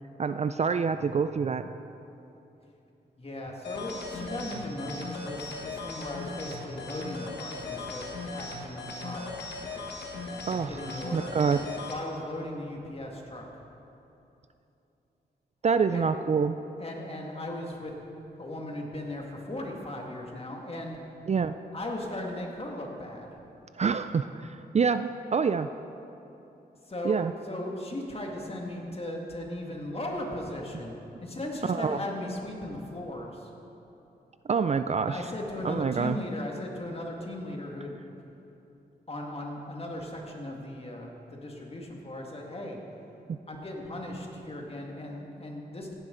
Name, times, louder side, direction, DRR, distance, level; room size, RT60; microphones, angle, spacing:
voice 1, 0.2-1.7 10.5-11.6 15.6-16.6 21.3-21.6 23.8-25.7 27.0-27.3 31.7-32.0 34.5-35.2 35.6-36.2 43.3-43.4, right 5 dB, 40° right, 11 dB, 0.4 m, -27 dB
voice 2, 3.2-9.3 10.5-11.5 11.8-13.5 15.9-16.1 16.8-17.9 18.4-21.0 21.7-23.4 26.8-33.5 35.1-38.0 39.1-42.8 43.5-45.9, left 1 dB, 35° left, 0 dB, 2.0 m, -37 dB
sound 1, 3.6-12.0, left 3 dB, 85° left, 1.4 m, -38 dB
16.0 x 10.5 x 3.9 m, 2.9 s
cardioid pair, 70°, 17 cm